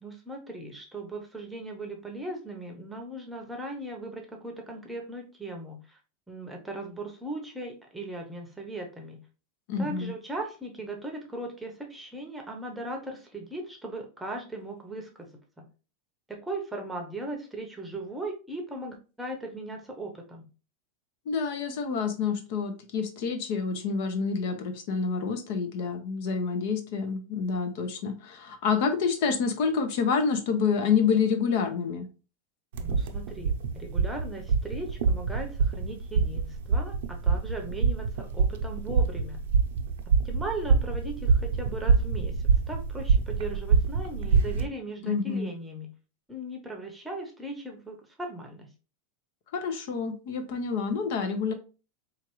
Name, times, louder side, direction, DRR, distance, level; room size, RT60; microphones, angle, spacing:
voice 1, 0.0-6.0 6.3-9.2 9.8-15.3 15.6-15.7 16.3-20.5 32.8-39.5 40.2-45.9 46.3-48.7, right 2 dB, 5° right, 2 dB, 0.8 m, -38 dB
voice 2, 9.7-10.1 21.3-32.1 45.0-45.5 49.5-51.5, left 5 dB, 65° left, 8 dB, 0.8 m, -28 dB
sound 1, 32.7-44.7, right 5 dB, 80° right, 0.6 m, -25 dB
4.4 x 2.5 x 3.0 m, 0.34 s
supercardioid pair, 140°, 0 cm